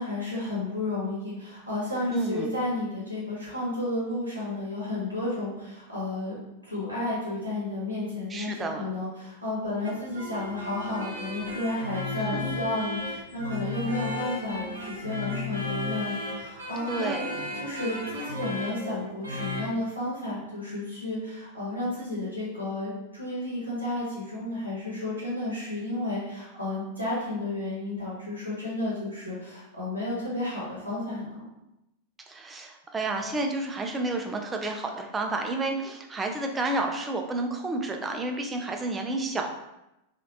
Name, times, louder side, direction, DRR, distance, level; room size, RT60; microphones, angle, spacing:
voice 1, 0.0-6.4 6.7-17.1 17.5-31.4, left 2 dB, 85° left, -8 dB, 1.1 m, -32 dB
voice 2, 2.1-2.5 8.3-8.8 12.1-12.6 16.9-17.3 32.3-39.5, right 2 dB, 15° right, 3 dB, 0.4 m, -30 dB
sound 1, 9.8-19.7, left 2 dB, 75° right, 0.7 m, -35 dB
2.9 x 2.4 x 2.7 m, 0.90 s
figure-of-eight pair, 90°, 0 cm